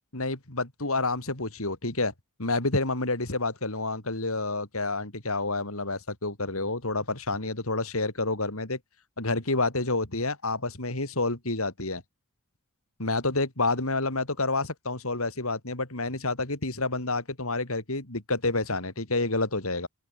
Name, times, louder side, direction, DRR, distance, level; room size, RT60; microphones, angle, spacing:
voice 1, 0.1-2.1 2.4-8.8 9.2-12.0 13.0-19.9, left 2 dB, 70° left, 4.2 m, -29 dB
open air
head